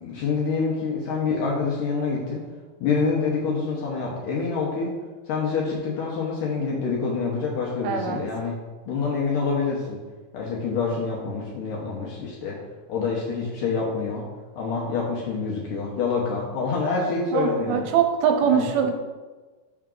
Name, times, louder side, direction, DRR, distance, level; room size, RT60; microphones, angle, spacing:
voice 1, 0.0-2.4 2.8-4.9 5.3-8.6 8.9-10.0 10.3-12.6 12.9-14.3 14.6-17.9 18.4-18.7, left 4 dB, 75° left, -3 dB, 2.0 m, -26 dB
voice 2, 7.8-8.2 17.3-18.9, right 7 dB, 80° right, 4 dB, 2.4 m, -22 dB
5.9 x 5.7 x 3.8 m, 1.3 s
omnidirectional pair, 4.5 m